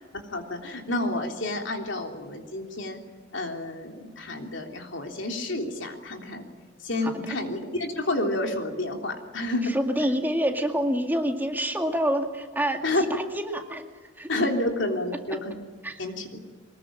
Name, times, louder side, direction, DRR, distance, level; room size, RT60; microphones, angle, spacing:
voice 1, 0.3-3.0 3.3-6.5 6.8-9.7 12.8-13.0 14.3-15.6 16.0-16.4, left 1 dB, 70° left, 3 dB, 3.4 m, -29 dB
voice 2, 7.0-7.4 9.6-13.9 14.2-14.3 15.8-16.0, equal, 10° right, 3 dB, 2.1 m, -27 dB
23.5 x 20.5 x 8.8 m, 1.5 s
head